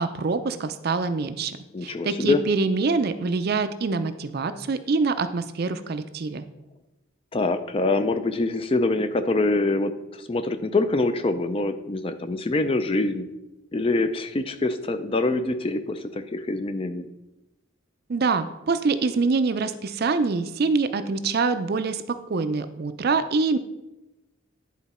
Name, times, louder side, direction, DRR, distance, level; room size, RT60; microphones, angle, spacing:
voice 1, 0.0-6.4 18.1-23.6, right 4 dB, 50° right, 11 dB, 0.4 m, -25 dB
voice 2, 1.7-2.4 7.3-13.3 13.7-17.1, left 2 dB, 25° left, 10 dB, 0.4 m, -25 dB
10.0 x 4.0 x 4.2 m, 0.97 s
head